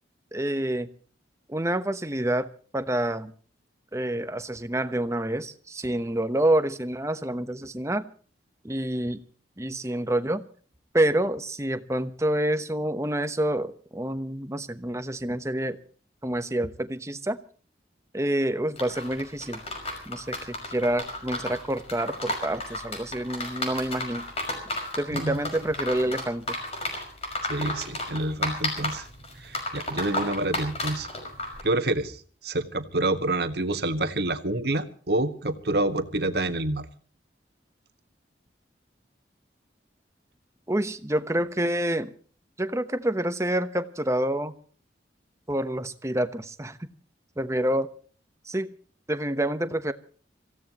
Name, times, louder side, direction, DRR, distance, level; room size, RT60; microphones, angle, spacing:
voice 1, 0.3-0.9 1.5-3.3 3.9-8.1 8.6-9.2 9.6-10.4 10.9-15.8 16.2-17.4 18.1-19.6 20.1-24.2 25.0-26.6 40.7-42.1 42.6-44.5 45.5-46.9 47.4-47.9 48.5-48.7 49.1-49.9, right 1 dB, 15° right, 11 dB, 1.0 m, -27 dB
sound 1, 18.8-31.6, left 2 dB, 35° left, 5.7 m, -33 dB
voice 2, 27.5-29.1 29.4-31.1 31.6-36.9, right 2 dB, 60° right, 9 dB, 1.5 m, -28 dB
26.0 x 16.0 x 3.0 m, 0.43 s
head